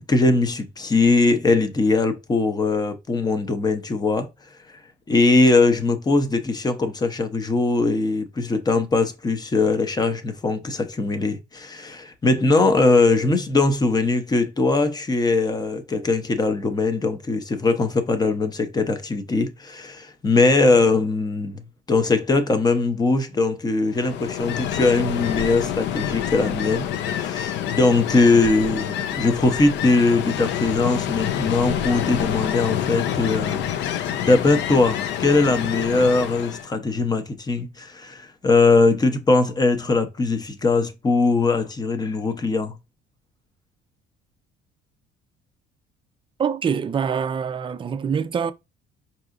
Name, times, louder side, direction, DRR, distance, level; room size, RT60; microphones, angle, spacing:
voice 1, 0.0-4.3 5.1-42.7, left 3 dB, 20° left, 0.7 m, -21 dB
Ocean, 23.9-36.7, left 10 dB, 65° left, 0.5 m, -27 dB
voice 2, 46.4-48.5, right 7 dB, 25° right, 0.4 m, -25 dB
4.7 x 2.8 x 2.5 m
cardioid pair, 110°, 19 cm